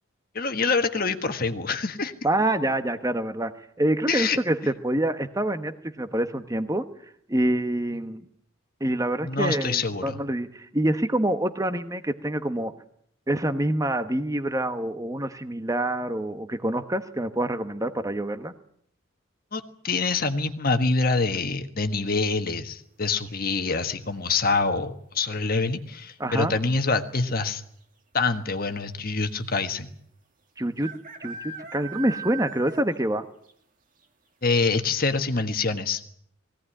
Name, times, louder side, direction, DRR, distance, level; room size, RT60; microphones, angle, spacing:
voice 1, 0.3-2.1 4.1-4.4 9.2-10.2 19.5-27.6 28.1-29.9 34.4-36.0, left 4 dB, 45° left, 7 dB, 1.5 m, -25 dB
voice 2, 2.2-6.8 7.3-8.2 8.8-12.7 13.3-18.5 26.2-26.5 30.6-30.9 31.2-33.2, right 1 dB, 15° right, 9 dB, 1.1 m, -26 dB
sound 1, 23.2-23.7 25.5-25.9 26.2-26.3 26.5-27.0 27.8-27.9 28.1-28.2 29.8-29.9 30.8-33.1 33.4-33.5 34.0-34.1 34.6-34.7, right 5 dB, 40° right, 2.2 m, -40 dB
21.0 x 17.0 x 10.0 m, 0.67 s
head